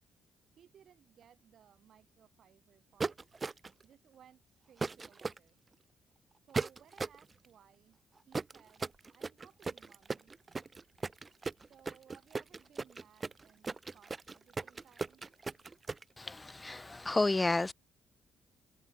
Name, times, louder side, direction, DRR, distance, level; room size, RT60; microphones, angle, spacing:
voice 1, 0.6-3.2 3.8-5.6 6.4-8.0 8.3-10.4 11.7-15.2 17.0-17.1, right 9 dB, 60° right, 7.4 m, -63 dB
sound 1, 3.0-3.8 4.8-5.4 6.5-7.2 8.3-16.0, right 4 dB, 25° right, 2.1 m, -37 dB
voice 2, 16.2-17.7, left 2 dB, 15° left, 0.8 m, -31 dB
cardioid pair, 110°, 0 cm